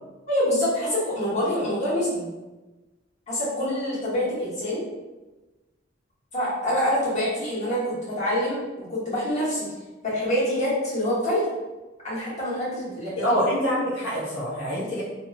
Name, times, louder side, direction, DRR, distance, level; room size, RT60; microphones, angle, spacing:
voice 1, 0.3-2.3 3.3-4.8 6.3-9.7 10.0-11.4 12.0-13.3, equal, 40° left, -9 dB, 1.3 m, -26 dB
voice 2, 13.2-15.0, equal, 70° left, -7 dB, 0.6 m, -25 dB
2.9 x 2.7 x 2.4 m, 1.1 s
head